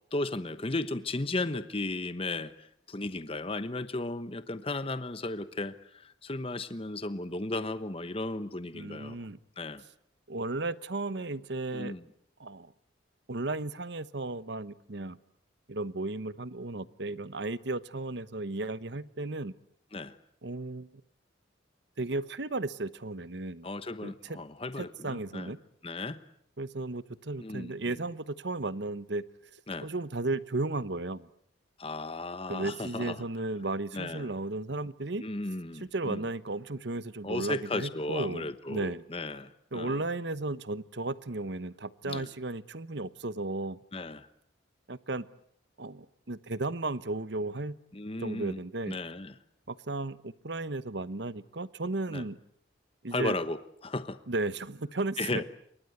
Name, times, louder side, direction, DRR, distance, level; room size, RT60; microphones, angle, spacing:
voice 1, 0.1-9.2 9.6-9.8 11.7-12.0 19.9-20.2 23.6-25.5 25.8-26.2 27.4-27.9 29.7-29.9 31.8-33.2 33.9-34.3 35.2-36.2 37.2-40.0 42.0-42.3 43.9-44.3 47.9-48.6 48.9-49.3 52.1-52.3 53.1-54.2 55.2-55.4, left 2 dB, 30° left, 12 dB, 1.0 m, -35 dB
voice 2, 8.7-9.4 10.3-11.9 12.4-12.7 13.3-15.2 15.7-19.5 20.4-20.9 22.0-23.7 24.0-24.4 24.8-25.6 26.6-29.2 29.5-31.3 32.5-35.2 35.7-39.0 39.7-43.8 44.9-45.3 45.8-47.8 48.2-49.0 49.7-52.4 53.0-53.4 54.3-55.4, right 2 dB, 60° right, 16 dB, 1.0 m, -34 dB
28.0 x 24.0 x 8.0 m, 0.68 s
head